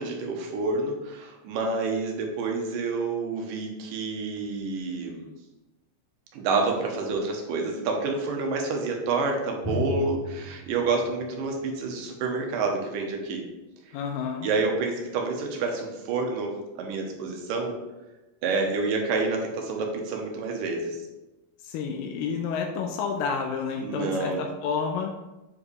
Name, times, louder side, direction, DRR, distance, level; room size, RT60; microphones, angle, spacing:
voice 1, 0.0-5.3 6.3-13.4 14.4-17.8 18.4-21.0 23.8-24.4, right 3 dB, 80° right, 1 dB, 2.6 m, -28 dB
Drum, 9.6-13.2, left 1 dB, 35° right, 2.3 m, -36 dB
voice 2, 13.9-14.5 21.6-25.2, left 6 dB, 85° left, 2 dB, 2.3 m, -30 dB
7.4 x 4.9 x 3.3 m, 1.0 s
omnidirectional pair, 3.9 m